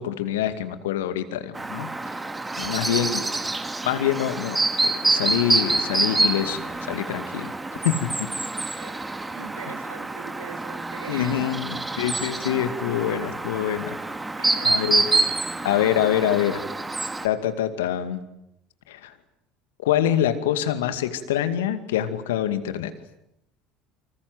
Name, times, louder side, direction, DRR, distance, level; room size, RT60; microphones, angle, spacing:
voice 1, 0.0-1.9 2.6-3.2 3.8-7.5 7.8-8.3 11.1-14.0 14.6-15.0 15.6-16.6 17.2-18.2 18.9-19.1 19.8-22.9, left 11 dB, 80° left, 10 dB, 2.3 m, -25 dB
Chirp tweet, 1.5-17.3, right 2 dB, 15° right, 2.6 m, -27 dB
voice 2, 2.6-3.4 8.6-11.8 14.4-15.4, right 7 dB, 85° right, 8 dB, 2.7 m, -42 dB
28.0 x 25.5 x 7.9 m, 0.82 s
hypercardioid pair, 70°, 0 cm